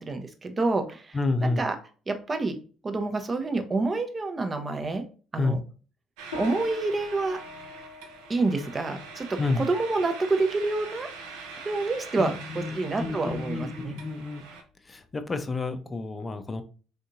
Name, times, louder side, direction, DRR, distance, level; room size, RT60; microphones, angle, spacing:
voice 1, 0.0-1.8 2.1-2.6 2.8-5.0 5.3-5.6 6.4-7.4 8.3-11.1 11.6-13.9, right 3 dB, 30° right, 7 dB, 0.6 m, -28 dB
voice 2, 1.1-1.7 5.3-5.6 9.4-9.6 12.2-14.4 14.9-16.6, left 3 dB, 30° left, 9 dB, 0.5 m, -30 dB
sound 1, 6.2-14.6, right 4 dB, 75° right, 0.4 m, -43 dB
sound 2, 6.3-16.0, left 3 dB, 85° left, 0.8 m, -46 dB
3.5 x 2.7 x 2.5 m, 0.38 s
hypercardioid pair, 55°, 0 cm